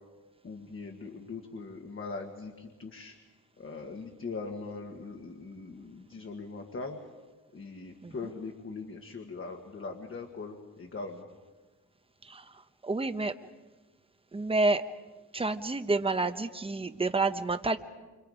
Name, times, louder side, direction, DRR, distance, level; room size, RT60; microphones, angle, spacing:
voice 1, 0.4-3.1 3.6-7.0 7.5-11.3, left 4 dB, 45° left, 2 dB, 1.7 m, -41 dB
voice 2, 12.8-13.3 14.3-14.8 15.3-17.8, right 3 dB, 20° right, 9 dB, 0.9 m, -28 dB
29.5 x 26.0 x 5.0 m, 1.2 s
wide cardioid pair, 180°, 29 cm